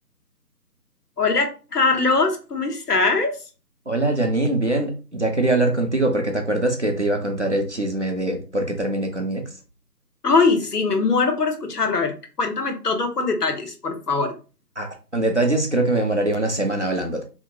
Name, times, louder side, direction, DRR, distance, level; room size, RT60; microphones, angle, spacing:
voice 1, 1.2-3.4 10.2-14.3, left 4 dB, 65° left, 5 dB, 0.8 m, -21 dB
voice 2, 3.9-9.4 14.8-17.2, right 2 dB, 45° right, 2 dB, 0.5 m, -23 dB
2.8 x 2.7 x 2.6 m, 0.34 s
figure-of-eight pair, 160°, 49 cm